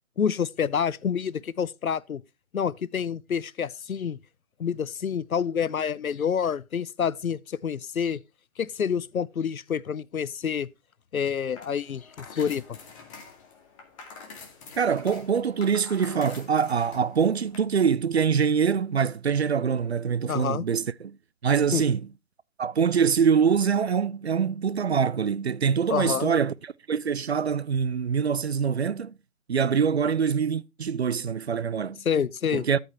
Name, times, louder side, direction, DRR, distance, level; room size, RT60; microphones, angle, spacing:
voice 1, 0.2-2.2 2.5-4.2 4.6-8.2 8.6-10.7 11.1-12.8 20.3-20.7 21.7-21.8 25.9-26.3 32.0-32.6, left 7 dB, 80° left, 0.7 m, -28 dB
sound 1, 11.5-17.6, left 4 dB, 25° left, 2.3 m, -46 dB
voice 2, 14.8-21.2 21.4-22.0 22.6-29.1 29.5-32.0 32.5-32.8, right 6 dB, 50° right, 0.5 m, -24 dB
13.0 x 5.3 x 4.2 m
figure-of-eight pair, 145°, 42 cm